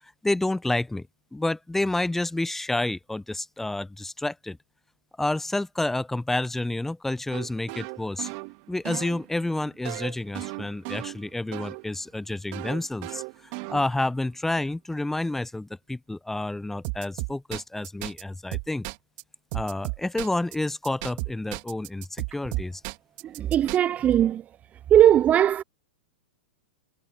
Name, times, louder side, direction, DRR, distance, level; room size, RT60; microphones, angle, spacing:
voice 1, 0.2-1.1 1.3-4.6 5.2-8.3 8.7-18.9 19.5-22.8, left 2 dB, 5° left, 0.7 m, -29 dB
sound 1, 7.3-11.9 12.5-14.2 16.8-18.2 18.5-19.2 19.5-20.5 20.8-23.8, right 30 dB, 45° right, 2.6 m, -35 dB
voice 2, 23.2-24.4 24.9-25.6, right 11 dB, 25° right, 0.4 m, -19 dB
hypercardioid pair, 105°, 6 cm